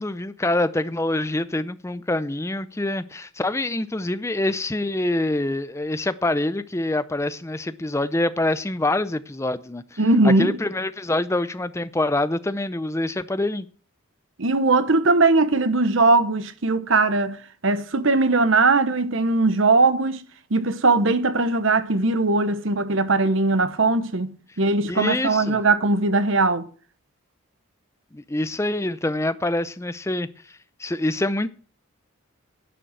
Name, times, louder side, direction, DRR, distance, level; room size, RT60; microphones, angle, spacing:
voice 1, 0.0-13.7 24.9-25.6 28.1-30.3 30.8-31.5, left 2 dB, 15° left, 0.5 m, -25 dB
voice 2, 10.0-10.6 14.4-20.2 20.5-26.7, right 3 dB, 60° right, 1.0 m, -20 dB
11.0 x 6.7 x 7.5 m
head